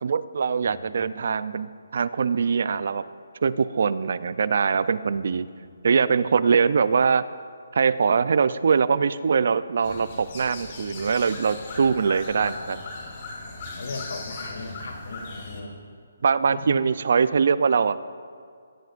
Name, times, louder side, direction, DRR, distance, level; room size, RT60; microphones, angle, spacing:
voice 1, 0.0-3.1 3.4-5.5 5.8-7.2 7.7-12.8 16.2-18.1, right 5 dB, 60° right, 15 dB, 0.5 m, -22 dB
voice 2, 0.6-1.4 2.7-2.8 5.1-5.8 6.4-6.5 9.9-10.0 12.4-12.7 13.4-15.8 16.6-16.8, left 3 dB, 70° left, 2 dB, 3.2 m, -39 dB
sound 1, 9.8-15.6, left 3 dB, 35° left, 3.6 m, -38 dB
22.0 x 16.0 x 2.6 m, 2.2 s
hypercardioid pair, 160°, 0 cm